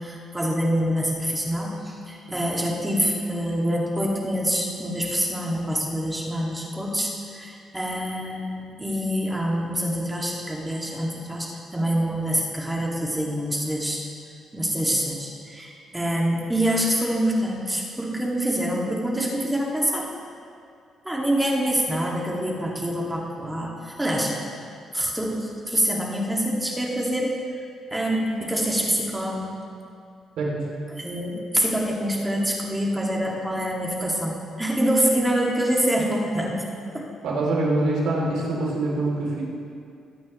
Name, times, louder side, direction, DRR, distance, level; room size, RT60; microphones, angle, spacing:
voice 1, 0.0-14.0 14.5-20.1 21.0-24.4 24.9-27.4 27.9-29.5 30.9-36.6 36.9-37.1, equal, 10° right, -3 dB, 2.1 m, -26 dB
voice 2, 30.4-30.7 37.2-39.4, right 2 dB, 80° right, -3 dB, 2.9 m, -24 dB
19.5 x 8.5 x 3.1 m, 2.4 s
cardioid pair, 90°, 0 cm